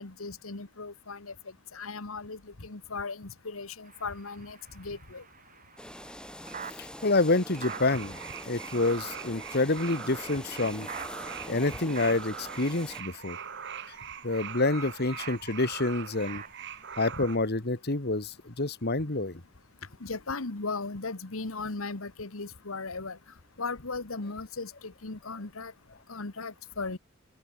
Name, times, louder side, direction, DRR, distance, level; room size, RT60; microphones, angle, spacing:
voice 1, 0.0-1.3 1.7-5.2 14.7-15.2 20.0-23.2 23.6-24.7 25.0-25.7 26.1-27.0, left 3 dB, 85° left, 1.6 m, -37 dB
sound 1, 3.8-16.9, right 6 dB, 40° right, 4.3 m, -49 dB
sound 2, 5.8-13.0, left 1 dB, 5° left, 4.1 m, -44 dB
voice 2, 7.0-8.2 8.5-10.9 11.5-13.4 14.2-16.4 17.0-19.4, left 2 dB, 50° left, 2.0 m, -28 dB
sound 3, 7.7-17.4, right 7 dB, 60° right, 2.5 m, -42 dB
open air
head